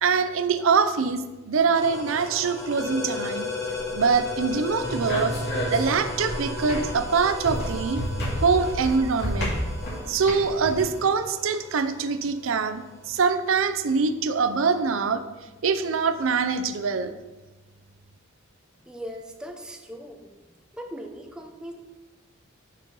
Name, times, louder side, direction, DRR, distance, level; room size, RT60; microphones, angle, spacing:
voice 1, 0.0-3.5 3.9-5.3 5.7-8.0 8.4-9.5 10.1-15.2 15.6-17.1, right 5 dB, 75° right, 10 dB, 0.5 m, -24 dB
sound 1, 1.8-13.1, left 2 dB, 15° left, 1.2 m, -35 dB
sound 2, 3.7-10.8, equal, 55° left, 2.4 m, -32 dB
voice 2, 18.9-20.3 20.7-21.7, equal, 5° right, 3 dB, 0.6 m, -39 dB
6.4 x 5.3 x 5.4 m, 1.1 s
head